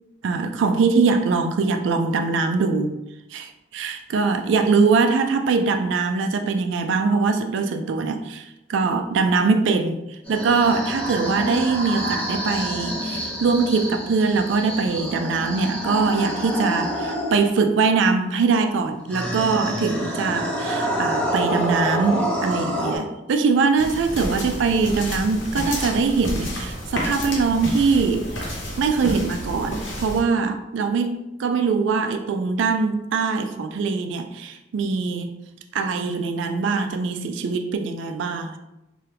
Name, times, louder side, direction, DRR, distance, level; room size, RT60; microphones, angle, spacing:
voice 1, 0.2-3.0 3.3-28.4 28.8-35.3 35.7-38.6, right 4 dB, 65° right, 6 dB, 0.3 m, -22 dB
sound 1, 10.2-17.5 19.1-23.0, equal, 10° left, 0.9 m, -27 dB
sound 2, 23.8-30.2, equal, 70° left, 0.8 m, -30 dB
2.9 x 2.3 x 3.3 m, 0.93 s
head